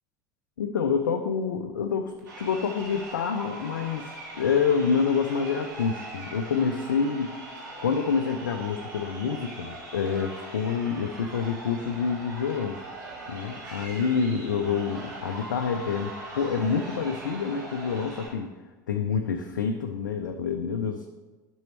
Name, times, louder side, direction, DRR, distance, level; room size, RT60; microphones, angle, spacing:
voice 1, 0.6-7.3 7.8-12.8 13.3-18.5 18.9-21.1, left 6 dB, 80° left, 5 dB, 0.5 m, -27 dB
Crowd, 2.2-18.3, right 2 dB, 80° right, 2.1 m, -41 dB
10.5 x 6.2 x 3.1 m, 1.3 s
figure-of-eight pair, 70°, 10 cm